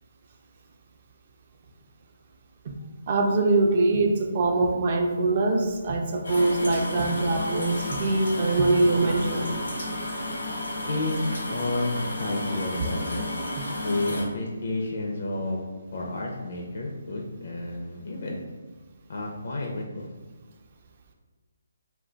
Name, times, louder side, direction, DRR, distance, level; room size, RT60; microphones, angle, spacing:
voice 1, 3.1-10.4 13.6-13.7, right 2 dB, 35° right, 3 dB, 0.4 m, -24 dB
sound 1, 6.2-14.2, left 1 dB, 80° left, 0.9 m, -32 dB
voice 2, 10.9-13.2 13.8-15.6 15.9-18.4 19.1-20.1, left 2 dB, 55° left, -1 dB, 0.4 m, -30 dB
2.3 x 2.2 x 3.8 m, 1.3 s
hypercardioid pair, 160°, 0 cm